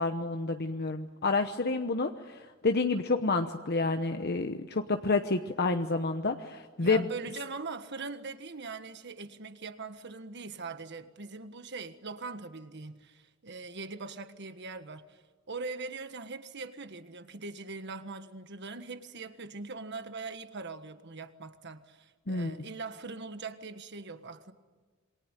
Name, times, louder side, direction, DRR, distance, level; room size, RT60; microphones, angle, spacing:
voice 1, 0.0-7.1 22.3-22.5, left 3 dB, 50° left, 1.0 m, -29 dB
voice 2, 6.8-24.5, right 4 dB, 55° right, 1.5 m, -41 dB
27.5 x 23.0 x 9.1 m
head